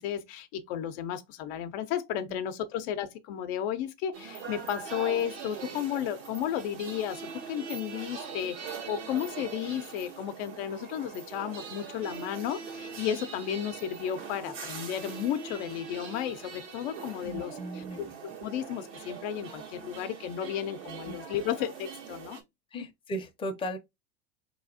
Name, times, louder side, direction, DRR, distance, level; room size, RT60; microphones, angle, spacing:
voice 1, 0.0-18.1 18.4-22.4, left 10 dB, 60° left, 0.7 m, -33 dB
sound 1, 4.1-22.4, right 6 dB, 80° right, 1.5 m, -42 dB
voice 2, 17.2-18.1 21.0-21.2 22.7-23.8, equal, 15° left, 0.7 m, -37 dB
4.0 x 3.0 x 2.7 m
hypercardioid pair, 105°, 36 cm